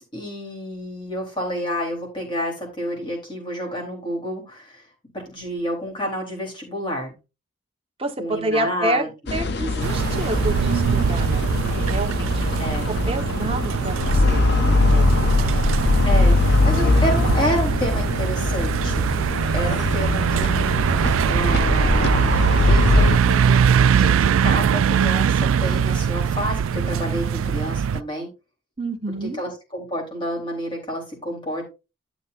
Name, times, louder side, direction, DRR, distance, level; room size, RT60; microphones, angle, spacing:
voice 1, 0.0-4.8 5.1-7.1 8.2-9.1 12.6-12.9 16.1-19.1 19.5-22.3 22.6-28.3 29.2-31.7, equal, 25° left, 0 dB, 3.8 m, -29 dB
voice 2, 8.0-9.1 9.3-11.4 11.8-15.3 28.8-29.4, right 1 dB, 30° right, 4 dB, 1.3 m, -29 dB
sound 1, 9.3-23.2, left 2 dB, 55° left, 0.7 m, -21 dB
sound 2, 9.8-28.0, right 7 dB, 85° right, 0.3 m, -22 dB
12.0 x 7.1 x 2.6 m, 0.29 s
head